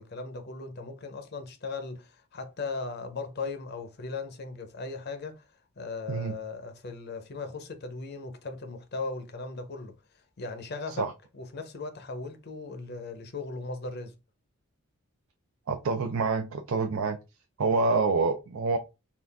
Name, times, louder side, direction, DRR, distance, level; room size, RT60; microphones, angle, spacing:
voice 1, 0.0-5.5 5.8-9.9 10.4-11.1 11.3-14.1, left 3 dB, 50° left, 0.6 m, -38 dB
voice 2, 15.7-17.2 17.6-18.8, right 4 dB, 70° right, 0.5 m, -27 dB
3.8 x 2.4 x 3.3 m
head